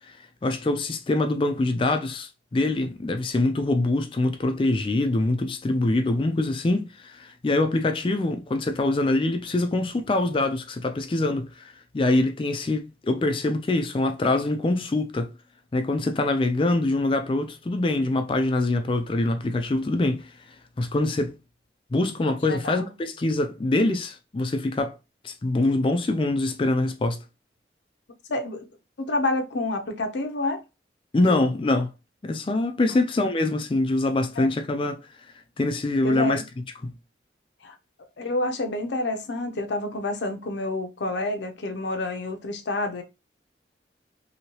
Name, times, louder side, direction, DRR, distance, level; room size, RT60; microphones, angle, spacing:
voice 1, 0.4-15.3 15.7-20.3 20.8-21.3 21.9-25.0 25.2-27.2 31.1-31.9 32.2-35.0 35.6-36.4 36.8-36.9, left 2 dB, 30° left, 0.3 m, -24 dB
voice 2, 22.5-22.9 28.3-28.6 29.0-30.6 31.3-31.4 32.9-33.0 34.4-34.5 36.0-36.4 37.6-37.7 38.2-43.0, left 2 dB, 80° left, 0.6 m, -28 dB
2.8 x 2.7 x 3.0 m
head